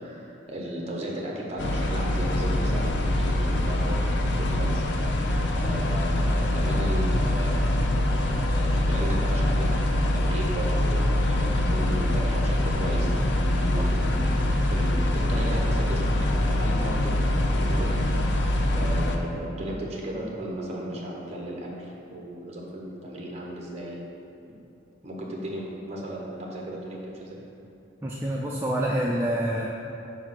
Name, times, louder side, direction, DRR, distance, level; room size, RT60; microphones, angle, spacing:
voice 1, 0.0-4.8 5.4-17.9 18.7-24.0 24.5-24.6 25.0-27.4, right 1 dB, 35° right, -2 dB, 1.0 m, -35 dB
sound 1, 1.6-19.2, left 1 dB, 60° left, 0.5 m, -24 dB
voice 2, 28.0-29.7, right 1 dB, 10° right, -4 dB, 0.3 m, -27 dB
5.0 x 4.7 x 5.6 m, 2.9 s
head